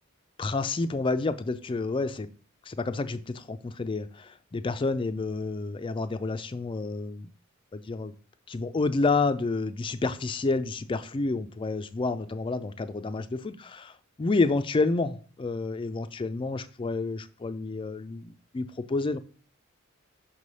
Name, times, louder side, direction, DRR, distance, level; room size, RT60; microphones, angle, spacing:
voice 1, 0.4-2.3 2.7-7.3 7.7-8.1 8.5-19.2, left 3 dB, 25° left, 11 dB, 0.4 m, -29 dB
5.8 x 3.2 x 5.4 m, 0.39 s
head